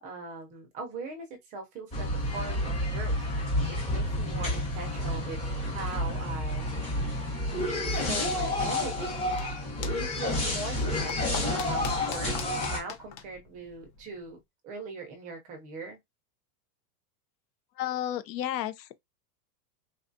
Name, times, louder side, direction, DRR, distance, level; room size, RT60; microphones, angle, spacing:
voice 1, 0.0-3.2 3.7-6.7 7.9-9.2 9.9-12.3 12.7-14.4 14.6-16.0, right 3 dB, 20° right, 0.4 m, -40 dB
sound 1, 1.9-12.8, left 1 dB, 15° left, 0.8 m, -30 dB
sound 2, 9.0-14.3, left 8 dB, 45° left, 0.8 m, -45 dB
voice 2, 17.8-19.0, left 12 dB, 85° left, 0.7 m, -32 dB
3.8 x 2.3 x 2.6 m
supercardioid pair, 160°, 49 cm